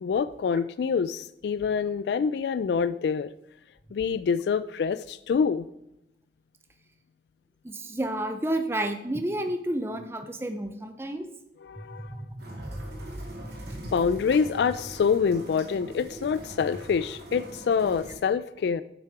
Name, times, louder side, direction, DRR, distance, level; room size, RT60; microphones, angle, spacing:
voice 1, 0.0-3.3 3.9-5.7 11.6-12.1 13.9-18.8, left 6 dB, 75° left, 16 dB, 0.3 m, -26 dB
voice 2, 7.6-11.3 11.8-12.5 13.7-13.9, right 1 dB, 15° right, 7 dB, 0.5 m, -31 dB
sound 1, 12.4-18.2, right 1 dB, 70° right, 2.7 m, -42 dB
9.4 x 7.5 x 4.8 m, 0.84 s
head